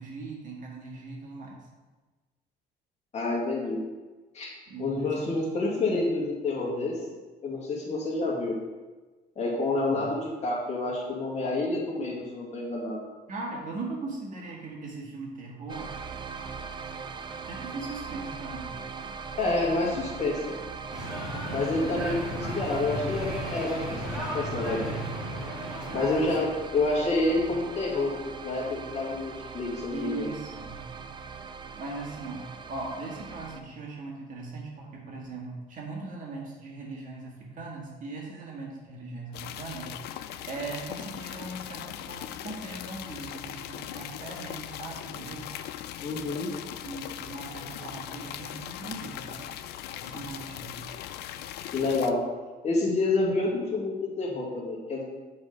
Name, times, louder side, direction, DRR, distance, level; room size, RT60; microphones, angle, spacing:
voice 1, 0.0-1.6 4.7-5.3 9.7-10.1 13.3-15.9 17.5-18.8 21.8-22.0 25.9-26.3 29.9-30.8 31.7-39.9 40.5-45.5 46.8-49.6 49.9-50.8, right 3 dB, 50° right, -2 dB, 1.8 m, -39 dB
voice 2, 3.1-3.8 4.3-4.5 4.8-7.0 7.4-8.5 9.4-13.0 19.4-20.5 21.5-24.9 25.9-28.1 28.4-30.3 46.0-46.5 51.7-52.2 52.6-55.0, left 2 dB, 40° left, -3 dB, 2.1 m, -28 dB
sound 1, 15.7-33.6, right 5 dB, 25° right, 0.4 m, -40 dB
sound 2, 20.9-26.4, equal, 5° right, 2.4 m, -35 dB
sound 3, 39.3-52.1, left 11 dB, 75° left, 0.4 m, -39 dB
6.8 x 4.1 x 5.1 m, 1.3 s
cardioid pair, 110°, 17 cm